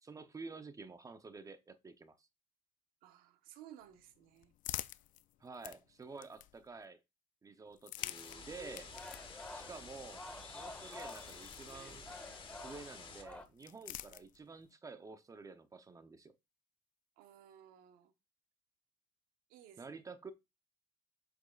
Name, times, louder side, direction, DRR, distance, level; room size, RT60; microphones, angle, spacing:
voice 1, 0.0-2.3 5.4-7.0 7.4-8.9 9.5-10.2 10.5-12.1 12.6-16.3 19.8-20.3, right 4 dB, 20° right, 0.7 m, -50 dB
voice 2, 3.0-4.5 9.6-9.8 17.2-18.1 19.5-20.0, right 11 dB, 80° right, 1.1 m, -58 dB
sound 1, 3.8-6.8 7.7-12.3 13.2-14.7, left 14 dB, 60° left, 0.5 m, -49 dB
sound 2, 8.0-13.2, left 5 dB, 35° left, 1.6 m, -52 dB
sound 3, 8.3-13.4, left 1 dB, 10° left, 1.3 m, -50 dB
8.1 x 6.2 x 2.4 m
cardioid pair, 110°, 15 cm